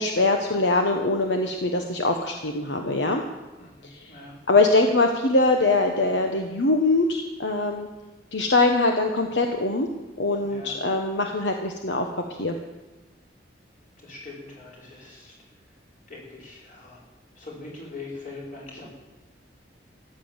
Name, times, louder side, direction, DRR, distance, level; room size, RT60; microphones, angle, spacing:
voice 1, 0.0-3.2 4.0-4.1 4.5-7.9 8.3-9.9 10.2-12.6, left 2 dB, 75° left, 4 dB, 1.1 m, -22 dB
voice 2, 3.6-4.4 10.4-10.8 14.0-15.3 16.1-17.0 17.4-18.9, left 3 dB, 45° left, -4 dB, 5.0 m, -42 dB
14.5 x 9.9 x 7.3 m, 1.1 s
head